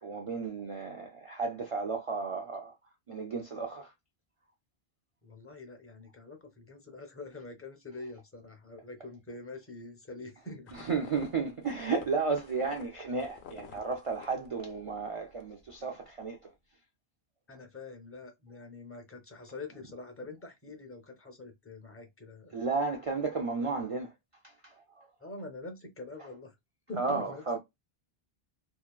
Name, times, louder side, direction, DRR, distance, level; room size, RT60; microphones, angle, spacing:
voice 1, 0.0-2.7 3.1-3.9 10.7-16.5 22.5-24.1 24.4-25.1 27.0-27.6, right 4 dB, 60° right, 0.3 m, -33 dB
voice 2, 5.2-10.7 17.5-22.6 25.2-26.6 26.9-27.6, left 2 dB, 20° left, 0.4 m, -45 dB
sound 1, 10.7-15.0 15.3-15.8, left 7 dB, 85° left, 0.9 m, -51 dB
2.7 x 2.2 x 2.3 m
omnidirectional pair, 1.1 m